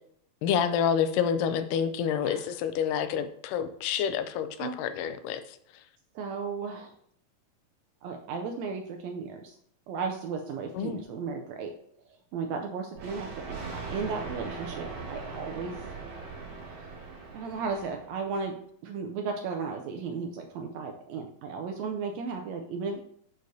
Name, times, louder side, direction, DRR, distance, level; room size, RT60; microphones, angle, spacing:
voice 1, 0.4-5.4 10.7-11.0, left 8 dB, 90° left, 10 dB, 2.2 m, -28 dB
voice 2, 6.1-6.9 8.0-9.5 9.9-11.7 12.3-15.8 16.6-16.8 17.3-18.5 18.8-23.0, right 5 dB, 85° right, 3 dB, 1.5 m, -35 dB
Thunder, 13.0-18.3, right 4 dB, 70° right, 2.9 m, -40 dB
6.4 x 6.3 x 2.7 m, 0.66 s
omnidirectional pair, 3.7 m